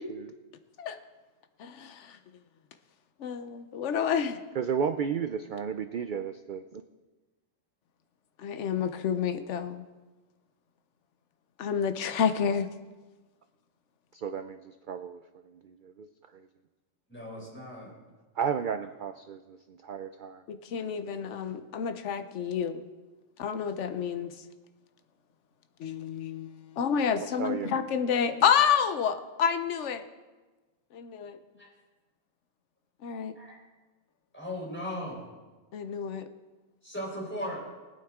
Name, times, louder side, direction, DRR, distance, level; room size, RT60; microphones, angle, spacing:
voice 1, 1.6-2.0 3.2-4.4 8.4-9.8 11.6-12.7 20.5-22.8 23.4-24.3 25.8-26.5 26.8-30.0 30.9-31.4 33.0-33.3 35.7-36.3, left 7 dB, 65° left, 9 dB, 1.1 m, -29 dB
voice 2, 4.5-6.8 14.1-15.2 15.6-16.1 16.3-16.5 18.4-20.4 27.4-27.7, right 7 dB, 65° right, 9 dB, 0.5 m, -33 dB
voice 3, 17.1-17.9 31.6-31.7 33.4-33.6 34.3-35.2 36.8-37.6, equal, 10° left, -4 dB, 4.0 m, -37 dB
20.0 x 9.0 x 3.7 m, 1.2 s
omnidirectional pair, 1.4 m